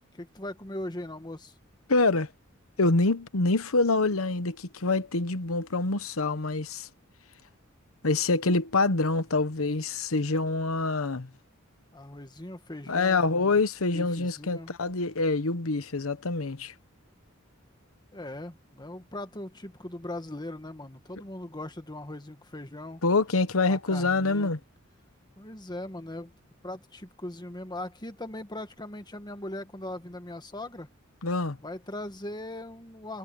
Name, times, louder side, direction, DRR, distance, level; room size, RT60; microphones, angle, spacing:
voice 1, 0.1-1.5 11.9-13.6 13.9-14.7 18.1-23.0 23.7-24.5 25.4-26.3 26.6-30.9 31.6-33.2, left 1 dB, 20° left, 1.7 m, -39 dB
voice 2, 1.9-2.3 2.8-6.9 8.0-11.3 12.9-16.7 23.0-24.6 31.2-31.6, left 3 dB, 85° left, 1.1 m, -26 dB
head